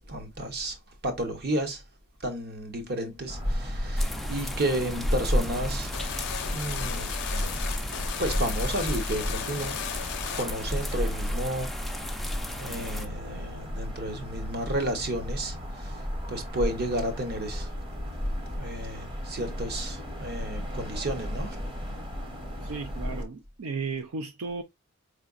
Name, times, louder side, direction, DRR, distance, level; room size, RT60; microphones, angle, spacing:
voice 1, 0.1-0.8 1.0-1.8 2.2-5.9 6.5-7.6 8.2-9.8 10.3-12.2 12.6-16.0 16.3-17.7 18.6-21.6, right 1 dB, 50° right, 1.0 m, -32 dB
sound 1, 3.3-23.2, equal, 25° right, 0.9 m, -33 dB
sound 2, 4.0-13.1, left 1 dB, ahead, 0.3 m, -39 dB
sound 3, 5.9-11.4, left 9 dB, 55° left, 0.5 m, -36 dB
voice 2, 22.6-24.6, right 4 dB, 75° right, 0.4 m, -34 dB
4.8 x 3.3 x 2.5 m
head